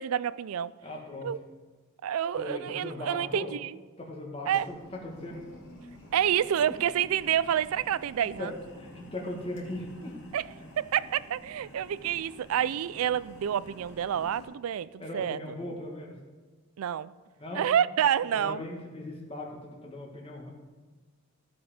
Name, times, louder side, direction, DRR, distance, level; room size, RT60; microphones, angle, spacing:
voice 1, 0.0-0.7 1.2-1.4 2.0-3.8 4.5-4.7 6.1-8.5 10.3-10.5 10.8-15.4 16.8-17.1 17.5-18.6, right 9 dB, 85° right, 0.3 m, -28 dB
voice 2, 0.8-1.3 2.4-3.5 4.0-5.4 8.4-10.1 10.6-10.7 15.0-16.1 17.4-17.7 18.3-20.5, left 1 dB, 25° left, 1.7 m, -39 dB
sound 1, 4.4-14.5, left 1 dB, 60° left, 2.5 m, -50 dB
15.0 x 5.1 x 5.1 m
head